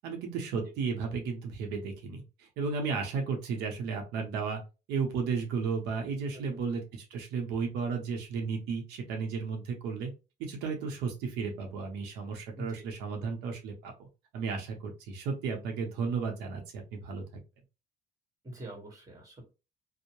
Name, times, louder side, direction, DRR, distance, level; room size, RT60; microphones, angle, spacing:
voice 1, 0.0-4.6 4.9-10.1 10.4-14.1 14.3-17.4, right 5 dB, 90° right, 2 dB, 0.7 m, -34 dB
voice 2, 6.3-6.6 12.6-12.8 18.4-19.4, right 1 dB, 20° right, 1 dB, 1.3 m, -44 dB
2.6 x 2.0 x 2.9 m, 0.29 s
cardioid pair, 110°, 17 cm